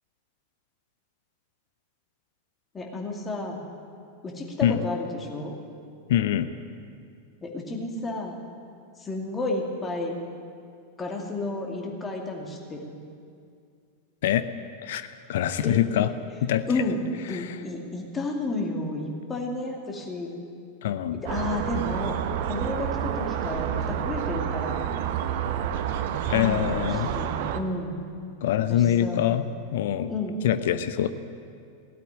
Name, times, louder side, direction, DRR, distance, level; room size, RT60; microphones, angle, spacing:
voice 1, 2.7-3.6 4.2-5.6 7.4-8.3 9.0-10.2 11.0-12.9 15.6-15.8 16.7-17.0 17.3-20.3 21.2-22.1 22.4-24.8 26.1-28.0 28.7-29.3 30.1-30.4, left 2 dB, 20° left, 0 dB, 2.4 m, -32 dB
voice 2, 6.1-6.5 14.2-14.4 14.8-16.1 16.4-16.6 17.3-17.5 20.8-21.2 26.3-27.1 28.4-29.4 29.7-30.1 30.4-31.1, left 11 dB, 55° left, 12 dB, 0.6 m, -24 dB
sound 1, 21.3-27.6, right 9 dB, 50° right, 0.8 m, -29 dB
16.5 x 8.5 x 9.7 m, 2.3 s
figure-of-eight pair, 90°, 0 cm